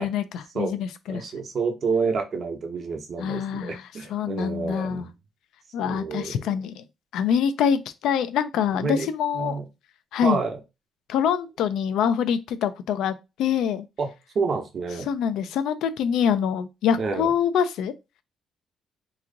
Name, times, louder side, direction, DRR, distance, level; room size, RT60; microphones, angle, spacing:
voice 1, 0.0-1.2 3.2-3.8 4.1-5.0 5.7-6.8 7.1-9.6 10.1-10.4 11.1-13.9 15.1-17.9, left 8 dB, 85° left, 0.4 m, -25 dB
voice 2, 1.1-5.1 5.8-6.4 8.8-9.1 9.3-9.7 10.2-10.6 14.0-15.1 17.0-17.3, right 4 dB, 55° right, 0.9 m, -29 dB
3.0 x 2.5 x 3.8 m
cardioid pair, 90°, 0 cm